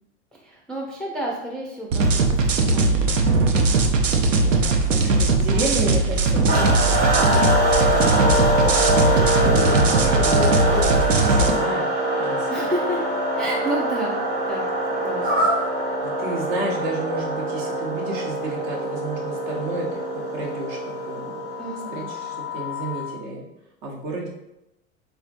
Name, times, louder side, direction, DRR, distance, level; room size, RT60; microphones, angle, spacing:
voice 1, 0.3-5.8 12.5-13.0 13.4-14.2 14.5-15.5 21.6-22.1, right 1 dB, ahead, -4 dB, 0.4 m, -32 dB
sound 1, 1.9-11.5, right 3 dB, 85° right, 0.5 m, -19 dB
voice 2, 5.0-9.1 9.6-11.9 12.2-12.5 16.0-21.4 21.9-23.4 23.8-24.3, right 2 dB, 55° right, -1 dB, 1.0 m, -31 dB
sound 2, 6.5-23.2, equal, 30° right, 1.0 m, -24 dB
sound 3, 9.2-9.8 10.1-10.9 15.2-15.7, right 1 dB, 70° right, 1.4 m, -26 dB
3.6 x 3.0 x 2.5 m, 0.89 s
hypercardioid pair, 85°, 37 cm